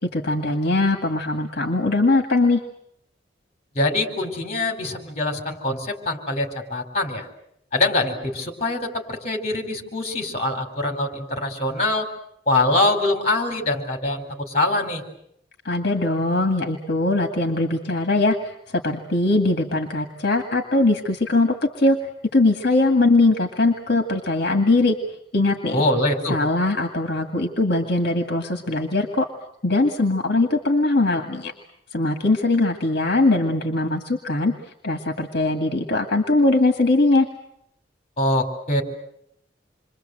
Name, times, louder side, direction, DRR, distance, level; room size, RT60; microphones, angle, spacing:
voice 1, 0.0-2.6 15.6-22.0 22.3-25.0 25.3-25.8 26.3-29.3 29.6-31.5 31.9-34.5 34.8-37.3, left 2 dB, 60° left, 4 dB, 2.1 m, -21 dB
voice 2, 3.7-7.3 7.7-12.1 12.5-15.0 25.7-26.4 38.2-38.8, left 2 dB, 35° left, 5 dB, 4.3 m, -23 dB
28.0 x 23.5 x 7.9 m, 0.75 s
head